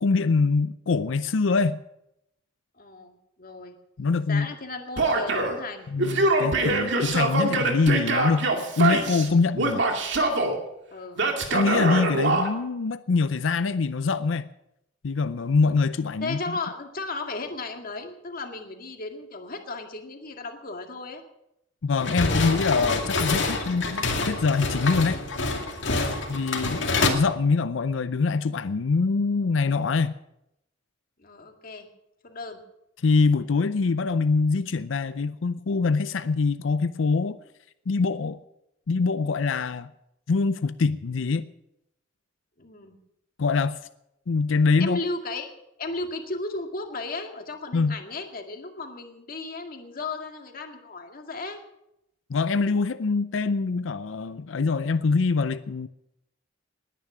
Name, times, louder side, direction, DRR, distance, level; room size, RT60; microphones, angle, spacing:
voice 1, 0.0-1.8 4.0-4.5 5.9-8.5 8.8-9.9 11.5-14.5 15.0-16.6 21.8-25.2 26.3-30.1 33.0-37.4 37.9-38.4 38.9-39.9 40.3-41.5 43.4-43.8 44.3-45.0 47.7-48.0 52.3-55.9, left 4 dB, 90° left, 0.5 m, -24 dB
voice 2, 2.8-3.7 4.3-5.9 10.9-11.3 16.2-21.2 31.2-31.9 32.2-32.6 42.6-43.0 44.8-45.5 45.8-51.6, left 3 dB, 50° left, 2.0 m, -35 dB
Male speech man speaking / Yell, 5.0-5.6 6.0-9.3 9.6-10.5 11.2-12.5, right 2 dB, 70° right, 2.4 m, -24 dB
sound 1, 22.0-27.1, left 3 dB, 70° left, 2.3 m, -27 dB
19.5 x 10.0 x 6.1 m
head